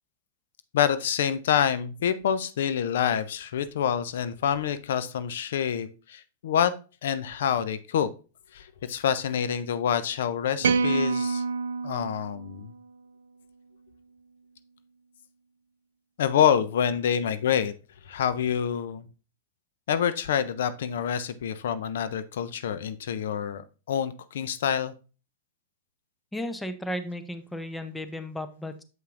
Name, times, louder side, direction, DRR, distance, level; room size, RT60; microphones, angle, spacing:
voice 1, 0.7-6.7 7.0-8.1 8.5-11.4 11.8-12.7 16.2-17.7 18.1-19.1 19.9-24.9, left 8 dB, 70° left, 14 dB, 0.5 m, -27 dB
sound 1, 10.6-13.0, right 5 dB, 75° right, 0.4 m, -27 dB
voice 2, 26.3-28.8, left 1 dB, 5° left, 9 dB, 0.7 m, -34 dB
7.5 x 5.5 x 2.5 m, 0.34 s
hypercardioid pair, 110°, 0 cm